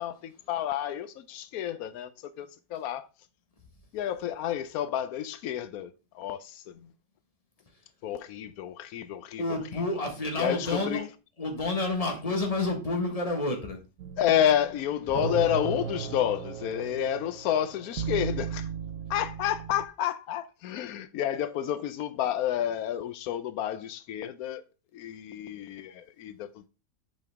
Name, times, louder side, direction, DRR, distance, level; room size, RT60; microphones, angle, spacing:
voice 1, 0.0-3.1 3.9-6.9 8.0-9.4 10.4-11.0 14.2-18.7 19.1-24.6 24.9-26.7, left 10 dB, 90° left, 1.1 m, -30 dB
voice 2, 9.4-11.0 11.4-13.8, left 2 dB, 25° left, 1.6 m, -29 dB
sound 1, 14.0-19.9, right 8 dB, 70° right, 1.0 m, -36 dB
7.7 x 5.3 x 3.5 m
omnidirectional pair, 1.5 m